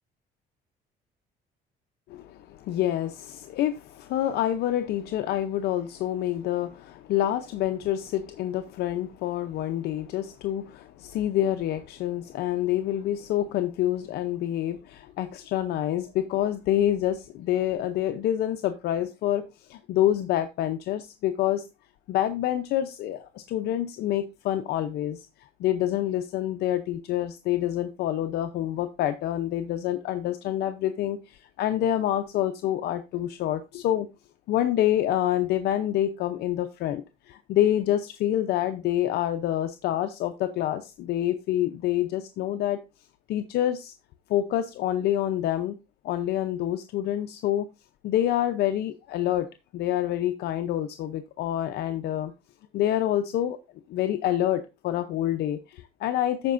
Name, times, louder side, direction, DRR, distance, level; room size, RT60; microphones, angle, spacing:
voice 1, 2.1-21.6 22.1-25.3 25.6-34.1 34.5-42.8 43.3-43.9 44.3-45.8 46.0-47.7 48.0-49.5 49.7-52.3 52.7-53.6 53.9-56.5, left 12 dB, 75° left, 0.6 m, -27 dB
14.0 x 5.1 x 2.5 m
cardioid pair, 110°, 17 cm